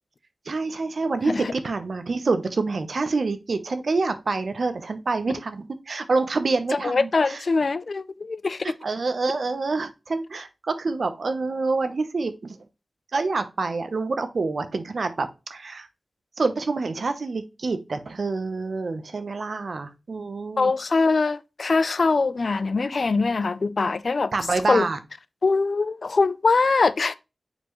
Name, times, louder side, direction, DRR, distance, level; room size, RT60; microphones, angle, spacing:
voice 1, 0.4-7.4 8.6-12.6 13.1-15.9 16.4-20.7 24.3-25.0, right 3 dB, 75° right, 0.8 m, -27 dB
voice 2, 6.8-8.7 20.6-24.3 24.7-24.9 25.4-27.2, left 4 dB, 70° left, 0.4 m, -22 dB
6.8 x 4.5 x 3.1 m
wide cardioid pair, 60°, 0 cm